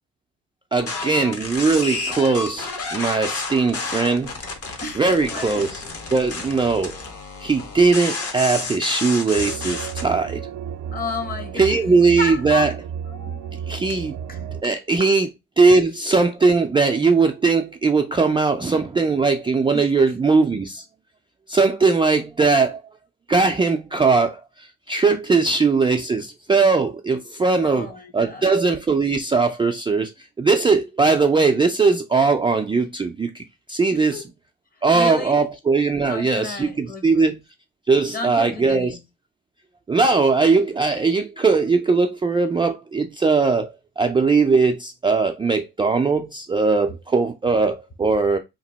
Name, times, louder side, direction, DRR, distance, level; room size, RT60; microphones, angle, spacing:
voice 1, 0.7-4.3 5.0-5.8 6.1-7.0 7.4-10.4 11.6-12.7 13.7-14.2 14.6-15.3 15.6-20.9 21.5-22.8 23.3-30.1 30.4-34.2 34.8-37.4 37.9-39.0 39.9-48.4, right 4 dB, 15° right, 0.3 m, -19 dB
sound 1, 0.8-10.0, left 4 dB, 50° left, 1.1 m, -31 dB
voice 2, 4.8-5.7 10.9-11.8 12.2-12.8 13.1-13.5 13.9-14.0 14.3-14.7 15.0-15.1 15.7-15.8 19.7-20.1 25.4-25.5 27.6-28.5 33.9-34.2 34.7-35.4 36.1-37.4 38.1-39.0, left 4 dB, 30° left, 0.9 m, -33 dB
sound 2, 9.3-14.6, right 8 dB, 80° right, 0.5 m, -33 dB
2.9 x 2.6 x 4.0 m
cardioid pair, 90°, 30 cm